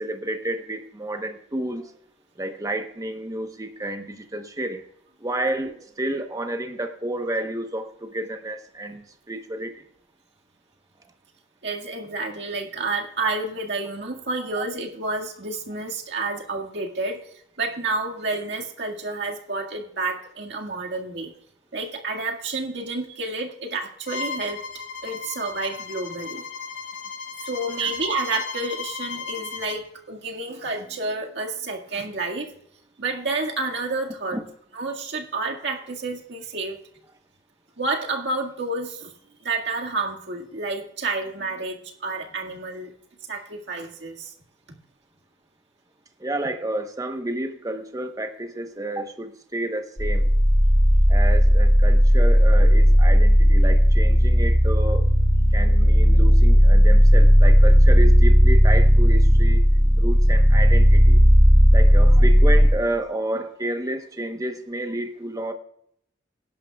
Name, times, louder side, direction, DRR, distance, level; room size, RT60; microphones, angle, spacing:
voice 1, 0.0-1.9 2.4-4.8 5.2-9.8 14.6-14.7 27.8-27.9 34.3-34.4 46.2-50.3 51.1-55.1 55.5-59.6 60.0-61.2 61.7-65.5, right 1 dB, 20° right, 7 dB, 1.0 m, -30 dB
voice 2, 11.6-17.2 17.6-21.3 21.7-24.6 25.0-26.4 27.4-32.5 33.0-34.4 34.7-36.8 37.8-39.1 39.4-42.9 43.3-44.3, right 3 dB, 70° right, 1 dB, 1.9 m, -29 dB
Bowed string instrument, 24.1-29.8, left 5 dB, 85° left, 1.3 m, -35 dB
sound 1, 50.0-62.7, equal, 40° left, 3.4 m, -15 dB
17.5 x 11.0 x 2.3 m, 0.69 s
head